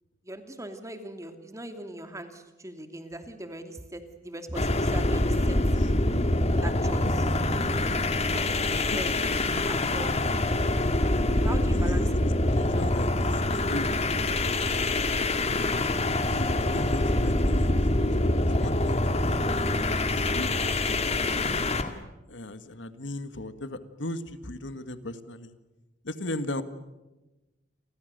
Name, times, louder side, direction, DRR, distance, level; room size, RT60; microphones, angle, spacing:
voice 1, 0.2-5.6 6.6-7.1 8.2-9.1 9.4-10.1 11.4-12.1, right 1 dB, 15° right, 7 dB, 2.7 m, -40 dB
sound 1, 4.5-21.9, left 2 dB, 35° left, 2.1 m, -25 dB
voice 2, 8.3-9.2 11.7-12.1 12.5-13.4 13.7-14.7 15.5-17.9 18.2-21.7 22.3-25.5 26.0-26.6, left 1 dB, 75° left, 11 dB, 1.8 m, -38 dB
30.0 x 25.0 x 6.8 m, 1.1 s
head